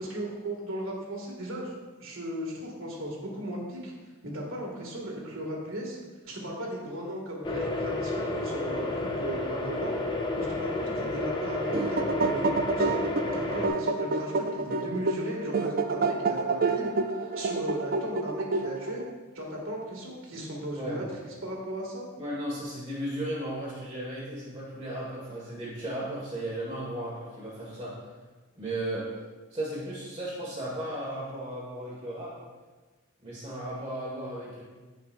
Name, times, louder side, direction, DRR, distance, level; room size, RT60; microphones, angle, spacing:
voice 1, 0.0-1.7 2.0-3.9 4.2-6.0 6.3-9.9 10.4-13.0 13.3-16.9 17.2-19.0 19.3-21.0 21.4-22.1, right 1 dB, 65° right, -2 dB, 2.1 m, -36 dB
sound 1, 7.4-13.7, left 2 dB, 20° left, 0.6 m, -31 dB
sound 2, 11.5-19.1, right 3 dB, 40° right, 0.4 m, -29 dB
voice 2, 22.2-27.9 28.5-29.1 29.5-32.3 33.2-34.6, right 1 dB, 25° right, -9 dB, 1.7 m, -35 dB
15.5 x 5.3 x 2.5 m, 1.3 s
head